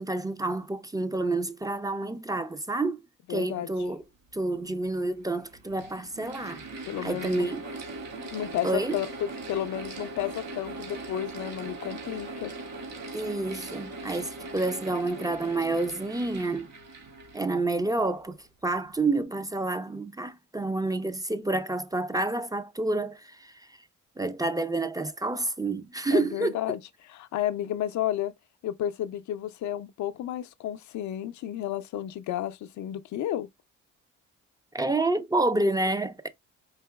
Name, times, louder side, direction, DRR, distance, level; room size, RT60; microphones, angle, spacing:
voice 1, 0.0-3.0 3.3-4.0 4.3-6.7 7.0-7.6 8.6-9.0 13.1-16.7 17.3-23.8 24.2-26.6 34.7-36.3, right 2 dB, 10° right, 0.4 m, -29 dB
voice 2, 3.3-3.7 6.9-7.5 8.3-12.5 26.1-26.8 27.1-28.3 28.6-33.5, left 12 dB, 70° left, 0.5 m, -32 dB
Mechanical fan, 4.5-4.6 5.4-18.1, right 2 dB, 60° right, 1.7 m, -40 dB
4.6 x 2.8 x 2.2 m
cardioid pair, 90°, 30 cm